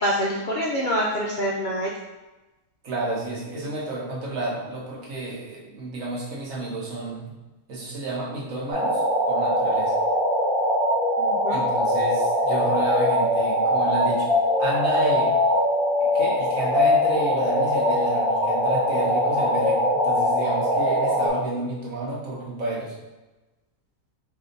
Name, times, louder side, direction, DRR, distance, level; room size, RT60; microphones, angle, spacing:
voice 1, 0.0-1.9 11.2-11.6, equal, 80° left, -4 dB, 0.4 m, -25 dB
voice 2, 2.8-7.3 7.7-10.0 11.5-14.3 14.6-15.3 16.0-23.0, right 2 dB, 60° right, -4 dB, 1.5 m, -31 dB
sound 1, 8.7-21.3, left 1 dB, 40° right, 1.5 m, -22 dB
4.9 x 2.8 x 3.9 m, 1.1 s
omnidirectional pair, 1.6 m